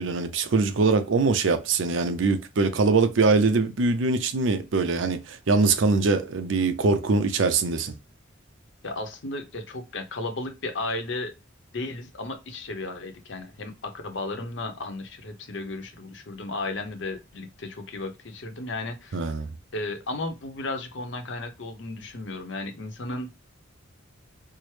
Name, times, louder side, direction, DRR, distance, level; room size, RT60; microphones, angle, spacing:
voice 1, 0.0-7.9 19.1-19.5, right 3 dB, 65° right, 0.5 m, -23 dB
voice 2, 8.8-11.3 11.7-19.3 19.7-23.3, left 2 dB, 65° left, 0.7 m, -34 dB
4.5 x 2.0 x 3.2 m
head